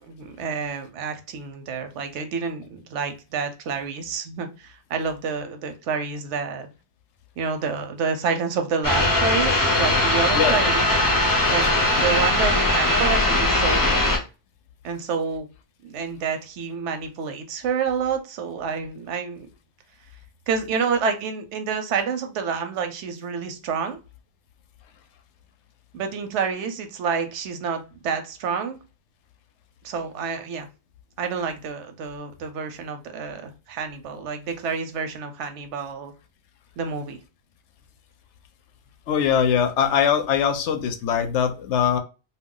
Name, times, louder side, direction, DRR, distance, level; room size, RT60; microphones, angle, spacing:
voice 1, 0.0-6.7 7.4-10.9 11.2-14.2 14.8-15.5 15.8-19.5 20.5-24.0 25.9-28.8 29.8-30.7 31.2-36.1 36.8-37.2, right 5 dB, 90° right, 7 dB, 0.9 m, -28 dB
sound 1, 8.8-14.2, left 1 dB, 25° left, 0.4 m, -20 dB
voice 2, 39.1-42.0, left 8 dB, 85° left, 8 dB, 0.9 m, -22 dB
2.3 x 2.2 x 3.6 m, 0.31 s
omnidirectional pair, 1.2 m